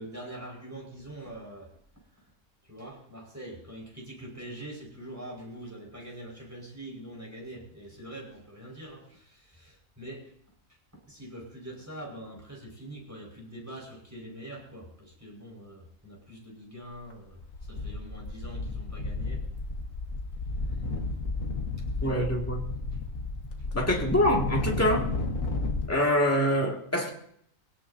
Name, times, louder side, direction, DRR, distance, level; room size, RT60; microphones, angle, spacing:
voice 1, 0.0-2.3 2.6-10.3 10.7-19.4 20.6-20.8 21.8-22.3 23.7-23.8, right 1 dB, 10° right, -1 dB, 5.0 m, -44 dB
sound 1, 16.9-17.1 17.4-25.9, left 3 dB, 80° left, 2.0 m, -32 dB
voice 2, 22.0-22.6 23.7-25.1 25.9-27.1, equal, 10° left, -1 dB, 2.2 m, -25 dB
23.0 x 17.0 x 2.7 m, 0.66 s
omnidirectional pair, 1.4 m